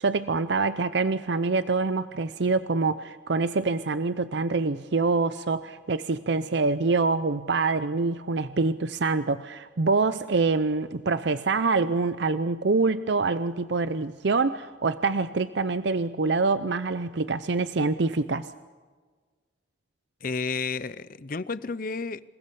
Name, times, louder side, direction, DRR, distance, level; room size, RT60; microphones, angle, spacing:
voice 1, 0.0-18.5, right 3 dB, 70° right, 13 dB, 0.6 m, -25 dB
voice 2, 20.2-22.2, left 4 dB, 50° left, 16 dB, 0.7 m, -31 dB
27.0 x 19.0 x 7.0 m, 1.4 s
head